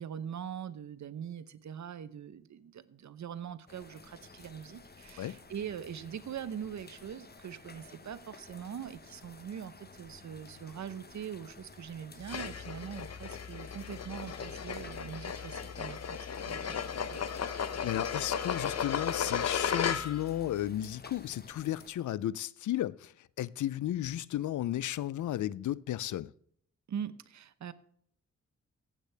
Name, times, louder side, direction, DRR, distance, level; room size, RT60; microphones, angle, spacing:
voice 1, 0.0-17.5 26.9-27.7, right 8 dB, 70° right, 0.8 m, -42 dB
sound 1, 3.7-21.9, left 4 dB, 35° left, 1.2 m, -54 dB
sound 2, 12.2-20.3, left 7 dB, 60° left, 0.9 m, -35 dB
voice 2, 17.8-26.3, left 12 dB, 85° left, 0.5 m, -34 dB
15.0 x 8.2 x 3.4 m
cardioid pair, 85°, 29 cm